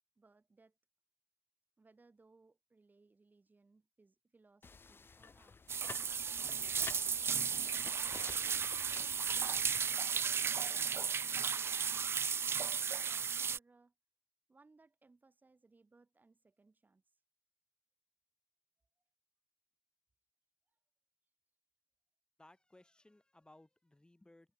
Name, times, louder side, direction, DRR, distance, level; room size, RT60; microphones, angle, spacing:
voice 1, 0.2-0.8 1.8-5.6 6.5-7.6 8.3-10.1 10.4-12.1 12.7-13.9 14.5-17.2, right 3 dB, 35° right, 6.7 m, -67 dB
sound 1, 4.6-9.8, left 4 dB, 45° left, 2.6 m, -52 dB
sound 2, 5.7-13.6, right 6 dB, 55° right, 0.4 m, -35 dB
voice 2, 22.4-24.5, left 1 dB, 15° left, 6.5 m, -62 dB
supercardioid pair, 45°, 5 cm